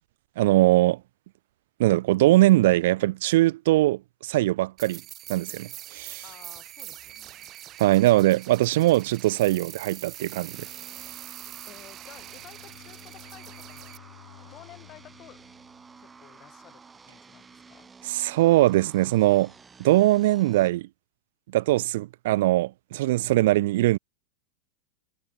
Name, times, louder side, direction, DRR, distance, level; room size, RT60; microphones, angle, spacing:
voice 1, 0.4-1.0 1.8-5.0 5.3-6.2 7.8-10.7 18.1-19.5 19.8-20.9 21.5-24.0, right 17 dB, 70° right, 0.6 m, -21 dB
sound 1, 4.8-14.0, right 13 dB, 35° right, 2.0 m, -43 dB
voice 2, 6.2-7.5 11.7-14.0 14.4-15.4 16.0-17.9, left 12 dB, 35° left, 6.4 m, -52 dB
sound 2, 10.5-20.7, right 5 dB, 15° right, 5.3 m, -51 dB
Bowed string instrument, 12.1-16.5, left 13 dB, 80° left, 5.8 m, -53 dB
hypercardioid pair, 125°, 0 cm